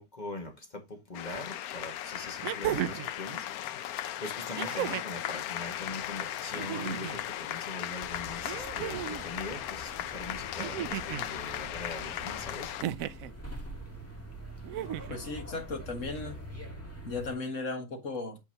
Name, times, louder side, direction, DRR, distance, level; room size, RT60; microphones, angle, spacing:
voice 1, 0.0-12.7, left 2 dB, 30° left, 2.0 m, -42 dB
sound 1, 1.1-12.8, left 12 dB, 85° left, 1.1 m, -37 dB
sound 2, 1.4-1.5 2.4-3.1 4.6-5.2 6.5-7.2 8.4-9.2 10.6-11.3 12.8-13.3 14.6-15.2 16.5-16.6, right 11 dB, 75° right, 1.0 m, -35 dB
sound 3, 8.0-17.3, right 1 dB, 10° left, 1.7 m, -45 dB
voice 2, 15.1-16.4 17.0-18.4, left 3 dB, 60° left, 2.0 m, -36 dB
8.6 x 5.7 x 2.9 m
omnidirectional pair, 1.5 m